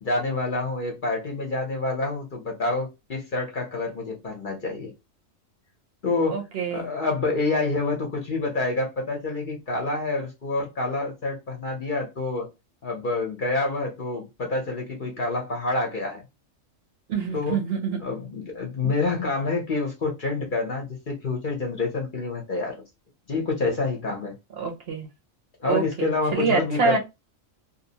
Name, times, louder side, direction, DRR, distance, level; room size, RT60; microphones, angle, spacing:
voice 1, 0.0-4.9 6.0-6.4 6.7-12.5 12.8-16.2 17.3-17.6 18.0-22.8 23.3-24.3 25.6-27.0, left 3 dB, 45° left, 0.8 m, -27 dB
voice 2, 6.3-6.9 17.1-18.0 24.6-25.1 25.6-27.0, right 5 dB, 55° right, 0.8 m, -26 dB
2.7 x 2.0 x 2.7 m
omnidirectional pair, 1.4 m